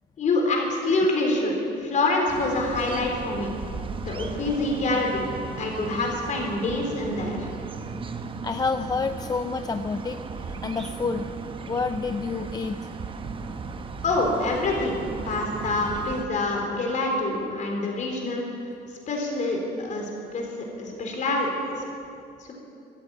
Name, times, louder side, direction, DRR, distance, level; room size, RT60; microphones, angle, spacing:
voice 1, 0.2-3.5 4.0-5.3 5.6-7.5 14.0-15.0 15.3-18.4 19.1-21.7, left 2 dB, 45° left, 1 dB, 4.0 m, -26 dB
sound 1, 2.3-16.3, right 4 dB, 30° right, 1.0 m, -36 dB
voice 2, 8.4-11.3 11.7-12.8, left 4 dB, 25° left, 9 dB, 0.5 m, -28 dB
15.0 x 10.5 x 8.9 m, 2.7 s
cardioid pair, 110°, 17 cm